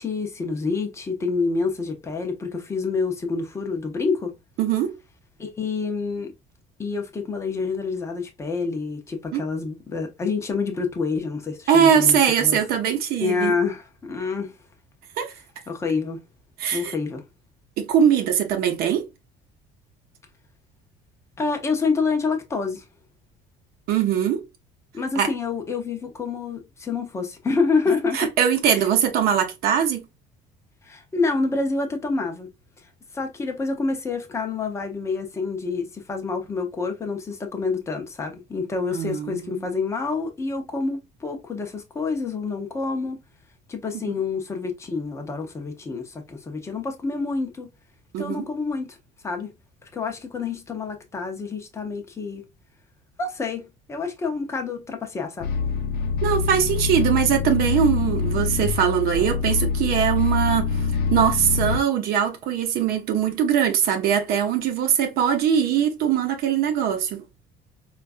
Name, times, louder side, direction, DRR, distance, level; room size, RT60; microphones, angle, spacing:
voice 1, 0.0-4.3 5.4-6.3 6.8-12.6 13.2-14.5 15.7-16.2 16.7-17.2 21.4-22.8 24.9-28.3 28.7-28.8 30.8-32.5 33.1-43.2 43.7-47.7 48.2-49.0 49.2-49.5 49.8-52.4 53.2-55.5, left 4 dB, 15° left, 0.7 m, -27 dB
voice 2, 4.6-5.0 9.3-9.4 11.7-13.5 15.2-15.3 16.6-16.9 17.8-19.1 23.9-24.4 25.2-25.3 28.1-30.0 38.9-39.6 48.1-48.4 56.2-67.2, right 8 dB, 60° right, 0.7 m, -21 dB
sound 1, 55.4-61.8, left 5 dB, 60° left, 0.6 m, -25 dB
4.4 x 2.4 x 2.4 m
cardioid pair, 170°, 18 cm